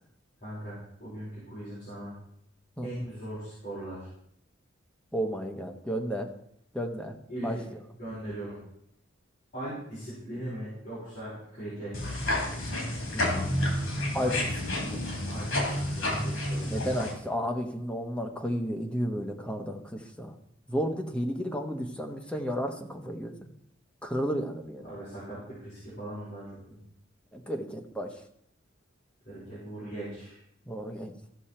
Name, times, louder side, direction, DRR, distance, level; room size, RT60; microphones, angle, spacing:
voice 1, 0.4-2.1 2.8-4.1 7.3-7.6 8.0-8.6 9.5-12.2 13.3-13.4 14.2-14.3 15.2-16.8 24.8-26.8 29.2-30.4, right 1 dB, 40° left, -10 dB, 4.8 m, -39 dB
voice 2, 5.1-6.3 6.7-7.1 7.4-7.8 13.1-13.6 14.1-14.3 14.8-15.0 16.7-20.3 20.7-23.4 24.0-24.8 27.3-28.1 30.7-31.1, equal, 5° left, 3 dB, 1.0 m, -32 dB
sound 1, 11.9-17.1, left 1 dB, 75° left, 3.1 m, -30 dB
15.0 x 6.3 x 4.3 m, 0.74 s
head